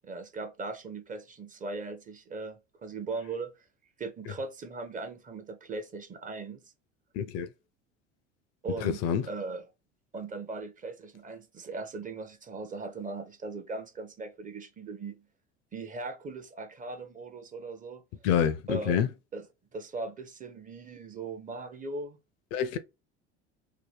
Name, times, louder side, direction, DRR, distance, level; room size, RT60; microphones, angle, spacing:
voice 1, 0.0-3.5 4.0-6.6 8.6-9.7 10.1-15.2 15.7-18.0 18.7-19.0 19.3-19.5 19.7-22.2, right 3 dB, 25° right, 0.6 m, -39 dB
voice 2, 7.2-7.5 8.8-9.2 18.2-19.1 22.5-22.8, left 8 dB, 45° left, 0.5 m, -27 dB
2.8 x 2.2 x 3.2 m
hypercardioid pair, 70°, 35 cm